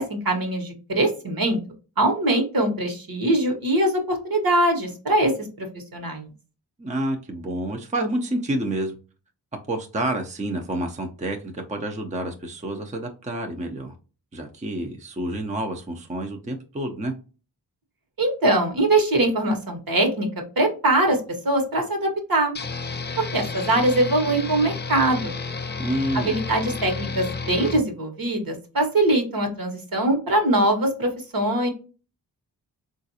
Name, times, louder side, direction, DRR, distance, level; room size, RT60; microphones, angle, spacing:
voice 1, 0.0-1.6 2.0-5.3 5.6-5.7 5.9-6.3 18.2-20.3 20.6-21.2 21.4-22.5 23.2-25.3 26.1-31.7, right 1 dB, 55° right, 4 dB, 1.3 m, -22 dB
voice 2, 6.8-8.9 9.7-13.9 14.3-17.1 25.8-26.4, right 1 dB, 15° right, 4 dB, 0.7 m, -28 dB
sound 1, 22.6-27.8, left 4 dB, 25° left, 0.5 m, -31 dB
3.8 x 2.5 x 2.7 m, 0.35 s
cardioid pair, 45°, 41 cm